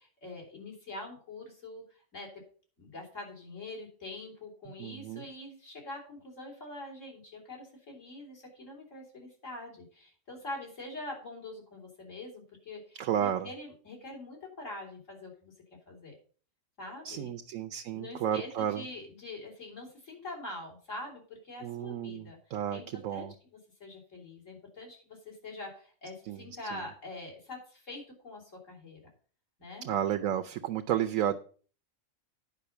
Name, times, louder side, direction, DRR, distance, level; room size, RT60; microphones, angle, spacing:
voice 1, 0.0-2.3 2.8-15.5 15.9-16.1 16.8-17.3 17.9-22.4 22.7-23.3 23.8-29.0 29.6-29.9, left 2 dB, 70° left, -1 dB, 3.9 m, -44 dB
voice 2, 4.8-5.2 13.0-13.5 17.0-18.8 21.6-23.3 26.3-26.8 29.8-31.4, right 10 dB, 85° right, 7 dB, 1.1 m, -32 dB
9.7 x 5.5 x 6.8 m, 0.42 s
omnidirectional pair, 1.4 m